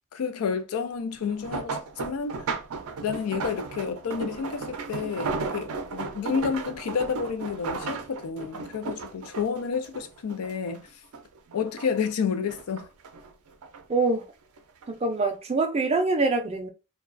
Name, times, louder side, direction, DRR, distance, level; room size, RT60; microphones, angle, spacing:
voice 1, 0.1-2.5 3.0-10.8 11.5-12.9, left 6 dB, 90° left, 0.4 m, -30 dB
sound 1, 1.2-10.8 11.1-12.1 12.5-13.8 14.6-14.9 15.3-15.4, right 4 dB, 90° right, 0.5 m, -35 dB
voice 2, 13.9-14.3 14.9-16.7, right 3 dB, 30° right, 0.3 m, -24 dB
2.3 x 2.2 x 2.4 m
head